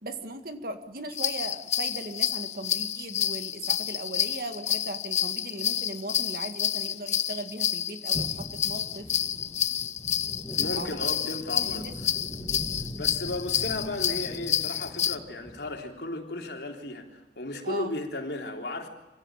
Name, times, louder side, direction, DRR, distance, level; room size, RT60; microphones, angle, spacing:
voice 1, 0.0-9.1 10.7-11.2 11.6-12.4 17.7-18.0, right 2 dB, 55° right, 2.1 m, -38 dB
sound 1, 1.1-15.2, left 10 dB, 40° left, 0.7 m, -29 dB
sound 2, 8.1-15.8, equal, 10° left, 2.6 m, -41 dB
voice 2, 10.6-12.1 13.0-18.9, left 2 dB, 70° left, 3.6 m, -35 dB
25.5 x 16.5 x 9.1 m
head